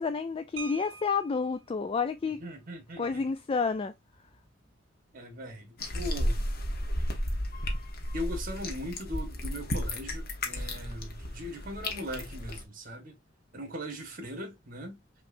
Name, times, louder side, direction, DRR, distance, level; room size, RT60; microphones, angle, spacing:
voice 1, 0.0-2.4 3.0-3.9, left 5 dB, 30° left, 0.3 m, -30 dB
sound 1, 0.6-1.6 3.1-3.2 3.6-3.7 4.1-4.4, right 4 dB, 85° right, 0.9 m, -44 dB
voice 2, 2.2-3.3 5.1-6.4 8.1-13.2 13.5-15.0, equal, 45° right, 1.5 m, -39 dB
sound 2, 5.8-12.6, left 1 dB, 50° left, 1.2 m, -33 dB
6.0 x 3.0 x 2.6 m
head